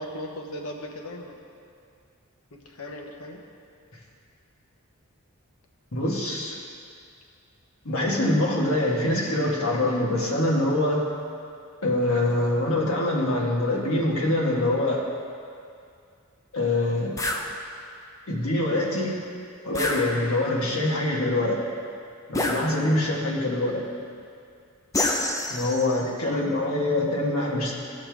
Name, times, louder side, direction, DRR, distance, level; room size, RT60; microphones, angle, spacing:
voice 1, 0.0-1.4 2.5-3.4 26.2-26.4, left 1 dB, 85° left, 1 dB, 1.0 m, -37 dB
voice 2, 5.9-6.6 7.8-11.0 11.8-15.0 16.5-17.1 18.3-19.2 19.6-21.6 22.3-23.8 25.5-27.7, left 1 dB, 70° left, -3 dB, 1.6 m, -24 dB
sound 1, 17.2-17.5 19.7-20.6 22.3-23.1 24.9-26.1, left 1 dB, 15° left, 0.6 m, -28 dB
15.0 x 5.8 x 3.5 m, 2.4 s
head